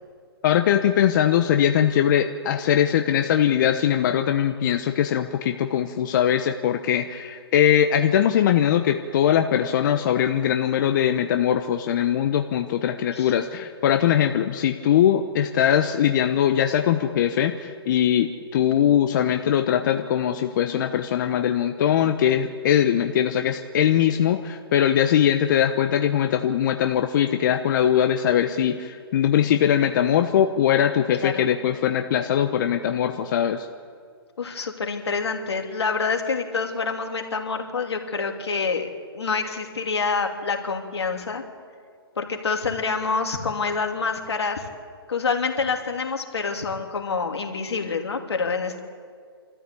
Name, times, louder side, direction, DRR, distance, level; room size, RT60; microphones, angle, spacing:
voice 1, 0.4-33.7, left 9 dB, 50° left, 6 dB, 1.0 m, -21 dB
voice 2, 34.4-38.9 39.1-41.4 42.2-44.7 45.1-48.8, left 4 dB, 80° left, 4 dB, 2.9 m, -27 dB
26.0 x 14.0 x 8.5 m, 2.1 s
hypercardioid pair, 140°, 14 cm